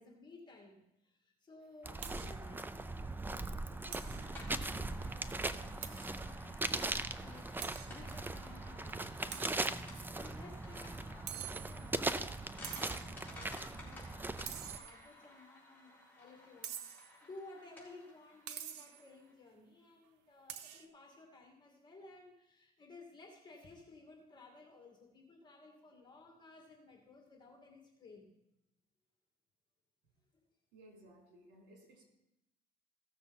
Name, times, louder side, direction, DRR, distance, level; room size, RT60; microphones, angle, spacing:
voice 1, 0.0-28.3 30.3-30.4, left 3 dB, 25° left, 0 dB, 2.2 m, -57 dB
sound 1, 1.8-14.8, right 2 dB, 10° right, 0.5 m, -40 dB
sound 2, 2.0-2.4 2.7-2.8 3.2-3.3 3.9-4.3 5.8-6.2 6.6-6.7 7.6-8.0 9.3-10.0 11.3-12.0 12.6-13.2 14.5-15.2 16.6-17.2 18.5-19.0 20.5-20.9, right 10 dB, 90° right, 0.8 m, -46 dB
sound 3, 4.0-19.3, left 2 dB, 10° left, 3.9 m, -56 dB
voice 2, 30.7-32.0, right 1 dB, 70° right, 0 dB, 3.7 m, -59 dB
15.5 x 6.9 x 4.2 m, 0.84 s
cardioid pair, 110°, 17 cm